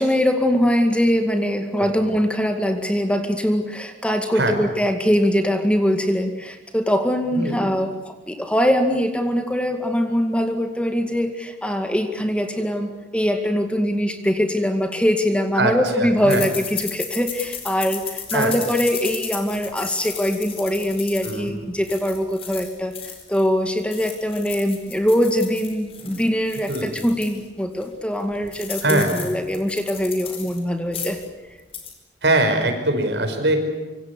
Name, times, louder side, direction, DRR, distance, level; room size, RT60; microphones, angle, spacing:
voice 1, 0.0-31.2, equal, 5° left, 5 dB, 2.1 m, -22 dB
voice 2, 16.0-16.4 18.3-18.5 21.2-21.5 26.7-26.9 28.8-29.2 32.2-33.6, right 2 dB, 75° right, 6 dB, 5.3 m, -21 dB
sound 1, 16.3-23.5 23.8-27.4 27.8-27.9 28.2-30.6 30.9-31.3 31.6-31.9, left 7 dB, 35° left, 4.6 m, -34 dB
25.5 x 24.5 x 8.4 m, 1.1 s
head